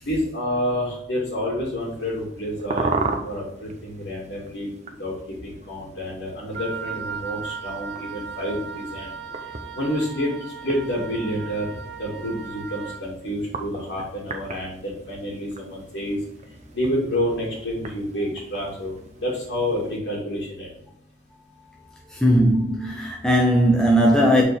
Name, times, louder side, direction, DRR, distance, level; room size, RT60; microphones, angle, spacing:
voice 1, 0.0-2.9 3.2-4.7 5.0-5.1 5.4-9.1 9.7-11.7 12.0-16.2 16.7-18.9 19.2-20.8, equal, 75° left, 2.2 m, -28 dB
sound 1, 1.8-20.0, right 3 dB, 40° right, 0.8 m, -37 dB
Wind instrument woodwind instrument, 6.5-13.1, right 6 dB, 70° right, 0.7 m, -36 dB
voice 2, 22.1-24.4, equal, 5° left, 0.7 m, -18 dB
6.7 x 4.4 x 3.5 m
head